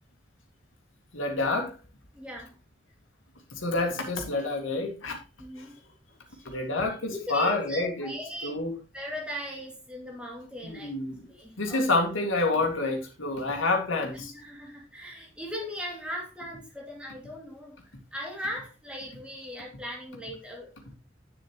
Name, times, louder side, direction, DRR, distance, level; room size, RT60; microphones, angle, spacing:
voice 1, 1.1-1.7 3.5-5.2 5.6-5.7 6.5-8.1 8.4-8.7 10.6-11.2 11.6-14.3, left 2 dB, 85° left, 2.1 m, -28 dB
voice 2, 2.1-2.5 5.4-5.8 6.3-6.4 7.0-8.6 8.9-10.9 11.3-11.8 14.0-17.8 18.1-21.0, equal, 5° right, 2.5 m, -39 dB
9.1 x 7.3 x 3.0 m
head